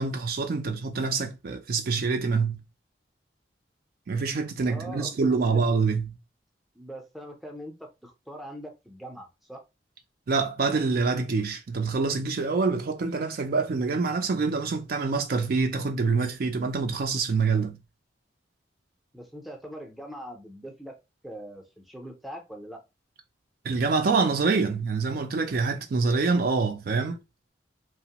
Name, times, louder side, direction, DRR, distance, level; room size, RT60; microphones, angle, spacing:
voice 1, 0.0-2.6 4.1-6.1 10.3-17.8 23.6-27.2, right 4 dB, 55° right, 0.4 m, -26 dB
voice 2, 4.7-5.6 6.7-9.6 19.1-21.0 21.2-22.8, equal, ahead, 0.5 m, -42 dB
2.9 x 2.0 x 2.8 m
head